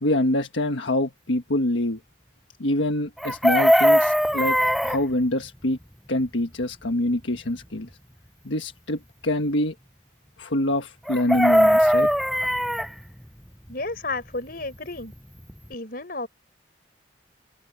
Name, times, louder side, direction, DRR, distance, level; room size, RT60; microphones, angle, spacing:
voice 1, 0.0-2.0 2.6-4.6 4.8-5.8 6.1-7.9 8.4-9.7 10.4-12.1, left 1 dB, 80° left, 1.5 m, -25 dB
Chicken rooster, 3.2-5.0 11.1-12.9 15.1-15.2 15.5-15.7, equal, ahead, 0.3 m, -19 dB
voice 2, 13.7-15.1 15.7-16.3, left 2 dB, 50° left, 4.7 m, -32 dB
head